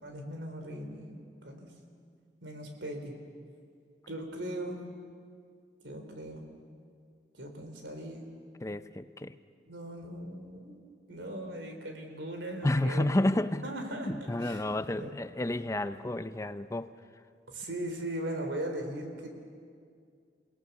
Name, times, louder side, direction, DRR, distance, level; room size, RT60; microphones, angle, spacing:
voice 1, 0.0-1.7 2.4-3.1 4.1-4.8 5.8-6.5 7.3-8.3 9.7-10.8 11.1-13.0 13.6-15.2 17.5-19.3, right 1 dB, 85° right, 4 dB, 3.5 m, -39 dB
voice 2, 8.6-9.3 12.6-13.6 14.1-16.9, left 1 dB, 15° left, 12 dB, 0.5 m, -30 dB
29.0 x 18.5 x 7.1 m, 2.2 s
head